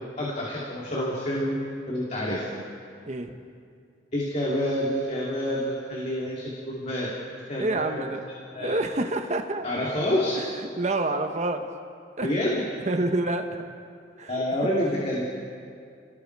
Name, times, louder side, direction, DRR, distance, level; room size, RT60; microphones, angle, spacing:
voice 1, 0.2-1.6 1.9-2.5 4.1-7.1 7.5-8.0 8.5-8.7 9.6-10.4 12.2-12.6 14.3-15.2, left 1 dB, 40° left, -5 dB, 3.0 m, -28 dB
voice 2, 3.1-3.4 7.6-8.2 8.6-9.6 10.3-10.5 10.8-11.7 12.2-12.3 12.9-13.5 14.2-14.4, right 2 dB, 40° right, 6 dB, 1.2 m, -27 dB
30.0 x 19.5 x 4.8 m, 2.3 s
head